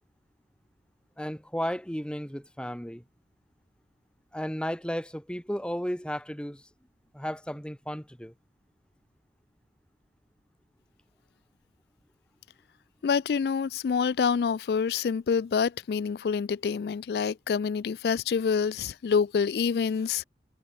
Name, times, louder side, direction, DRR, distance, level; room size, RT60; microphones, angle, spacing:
voice 1, 1.2-3.0 4.3-6.7 7.1-8.3, equal, 5° left, 2.4 m, -34 dB
voice 2, 13.0-20.2, left 6 dB, 60° left, 0.3 m, -27 dB
head